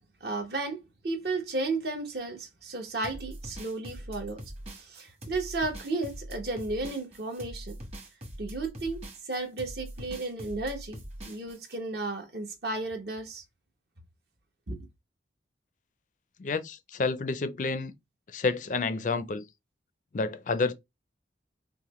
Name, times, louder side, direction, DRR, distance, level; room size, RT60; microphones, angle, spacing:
voice 1, 0.2-0.8 1.0-4.4 4.7-7.7 8.4-9.0 9.2-11.0 11.2-13.4 14.7-14.8, right 2 dB, 60° right, 1.0 m, -33 dB
sound 1, 3.0-11.8, equal, 35° right, 1.1 m, -43 dB
voice 2, 16.4-17.9 18.3-19.5 20.1-20.7, left 4 dB, 40° left, 0.4 m, -29 dB
5.7 x 2.1 x 3.0 m
head